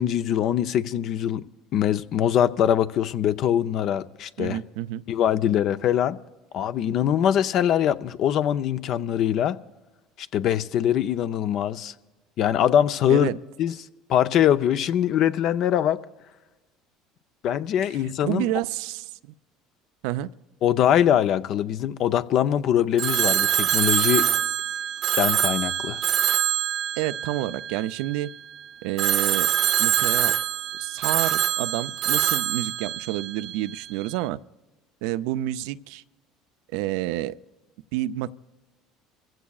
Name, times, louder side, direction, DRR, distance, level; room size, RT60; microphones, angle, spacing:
voice 1, 0.0-1.5 1.7-4.6 5.1-6.2 6.5-9.6 10.3-11.9 12.4-13.3 13.6-13.7 14.1-16.0 17.4-18.4 20.6-24.3 25.2-26.0, left 10 dB, 60° left, 0.5 m, -22 dB
voice 2, 4.4-5.0 13.1-13.4 17.9-19.3 20.0-20.3 27.0-28.3 28.8-29.5 29.8-30.3 30.8-34.4 35.0-36.0 36.7-37.4 37.9-38.3, right 15 dB, 75° right, 0.4 m, -29 dB
Telephone, 23.0-28.2 29.0-33.9, right 11 dB, 55° right, 0.7 m, -24 dB
26.5 x 15.5 x 2.4 m
supercardioid pair, 85°, 0 cm